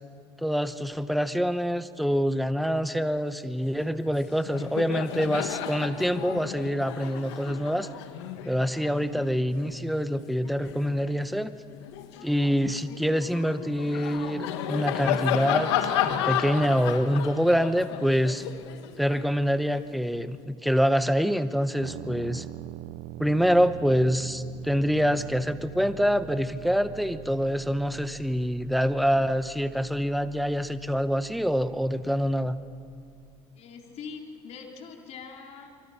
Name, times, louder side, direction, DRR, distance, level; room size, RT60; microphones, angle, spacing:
voice 1, 0.4-7.9 8.4-11.5 12.2-18.4 19.0-22.4 23.2-32.6, equal, ahead, 11 dB, 1.0 m, -26 dB
Laughter, 4.0-4.2 4.5-11.2 11.7-19.9, left 10 dB, 85° left, 1.5 m, -33 dB
sound 1, 21.8-33.4, right 17 dB, 65° right, 0.7 m, -44 dB
voice 2, 33.6-35.7, left 5 dB, 55° left, 1 dB, 3.8 m, -42 dB
27.5 x 24.0 x 5.9 m, 2.3 s
supercardioid pair, 90°, 14 cm